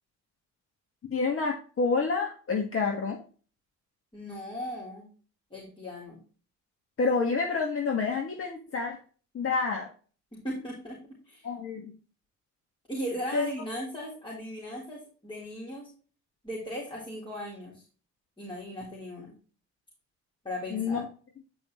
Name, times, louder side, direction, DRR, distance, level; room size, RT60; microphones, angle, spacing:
voice 1, 1.1-3.2 7.0-9.0 9.3-9.9 11.4-11.9 13.3-13.5 20.7-21.0, left 4 dB, 45° left, 2 dB, 1.7 m, -28 dB
voice 2, 4.1-5.1 5.5-6.2 10.3-11.0 11.3-11.5 12.9-15.9 16.4-17.8 18.4-19.3 20.4-21.0, equal, 15° left, -5 dB, 3.9 m, -37 dB
9.7 x 5.3 x 3.1 m, 0.38 s
cardioid pair, 90°, 30 cm